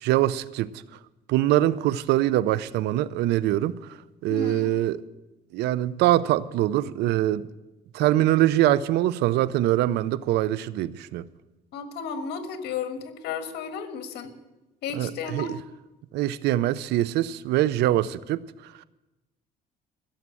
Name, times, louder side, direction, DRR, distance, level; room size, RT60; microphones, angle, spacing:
voice 1, 0.0-0.7 1.3-3.8 4.2-5.0 5.5-7.5 7.9-11.3 14.9-15.6 16.1-18.8, right 14 dB, 80° right, 0.6 m, -23 dB
voice 2, 4.3-4.7 11.7-14.4 14.8-15.5, left 6 dB, 80° left, 1.6 m, -33 dB
15.5 x 7.4 x 8.3 m
cardioid pair, 110°, 17 cm